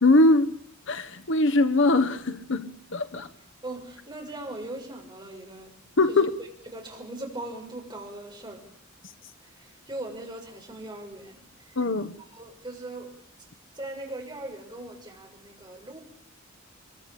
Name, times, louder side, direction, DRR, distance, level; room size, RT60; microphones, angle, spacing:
voice 1, 0.0-0.5 0.9-3.3 6.0-6.3 11.8-12.1, left 2 dB, 60° left, 10 dB, 1.3 m, -22 dB
voice 2, 3.6-5.7 6.1-8.6 9.4-12.1 12.3-13.2 13.7-16.0, right 1 dB, 20° right, 2 dB, 6.5 m, -40 dB
24.5 x 23.0 x 8.8 m, 0.64 s
head